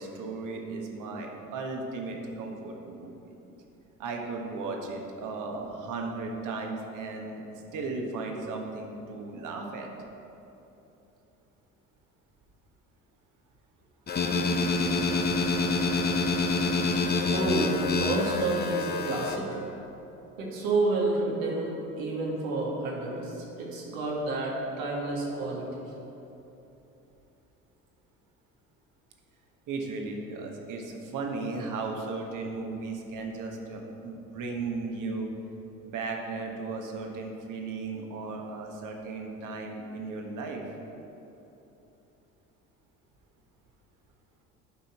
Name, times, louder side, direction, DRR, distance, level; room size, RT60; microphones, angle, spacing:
voice 1, 0.0-3.3 4.0-9.9 29.7-35.3 35.8-40.6, right 3 dB, 45° right, 2 dB, 1.4 m, -36 dB
sound 1, 14.1-19.4, left 3 dB, 25° left, 0.8 m, -27 dB
voice 2, 17.3-19.7 20.4-25.7, right 2 dB, 70° right, -3 dB, 1.8 m, -30 dB
10.0 x 5.6 x 4.4 m, 3.0 s
figure-of-eight pair, 60°, 42 cm